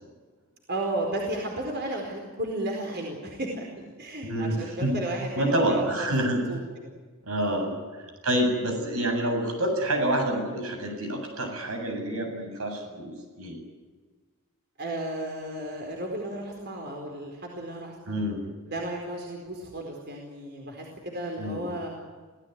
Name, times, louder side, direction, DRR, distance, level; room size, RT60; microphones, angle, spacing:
voice 1, 0.7-6.1 6.5-6.6 7.5-7.6 14.8-18.2 18.7-21.9, right 1 dB, 50° right, 1 dB, 4.5 m, -33 dB
voice 2, 4.2-4.9 5.4-6.4 7.2-7.7 8.2-13.6 18.1-18.4 21.4-21.7, right 1 dB, 75° right, 3 dB, 7.9 m, -27 dB
26.0 x 17.0 x 9.6 m, 1.4 s
head